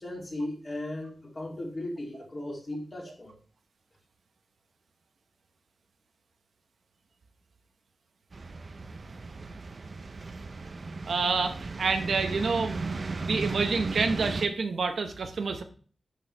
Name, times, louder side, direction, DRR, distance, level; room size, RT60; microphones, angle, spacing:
voice 1, 0.0-3.3, left 1 dB, 30° left, -2 dB, 2.5 m, -36 dB
sound 1, 8.3-14.5, right 3 dB, 40° right, 0.6 m, -36 dB
voice 2, 11.1-12.8 13.2-15.6, right 4 dB, 75° right, 7 dB, 0.8 m, -28 dB
11.0 x 4.6 x 3.2 m, 0.43 s
wide cardioid pair, 155°, 0 cm